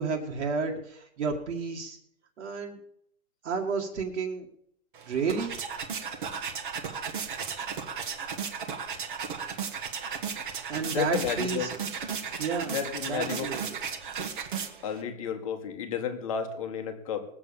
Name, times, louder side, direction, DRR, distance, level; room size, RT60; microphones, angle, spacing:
voice 1, 0.0-2.0 2.4-2.8 3.4-4.5 5.1-5.6 10.7-11.7 12.4-12.8 13.1-13.6, right 5 dB, 55° right, -3 dB, 2.1 m, -31 dB
sound 1, 4.9-15.0, right 6 dB, 35° right, 1.4 m, -35 dB
voice 2, 10.9-11.7 12.7-13.5 14.8-17.3, left 8 dB, 25° left, 6 dB, 1.3 m, -32 dB
20.0 x 7.7 x 7.0 m, 0.71 s
hypercardioid pair, 180°, 44 cm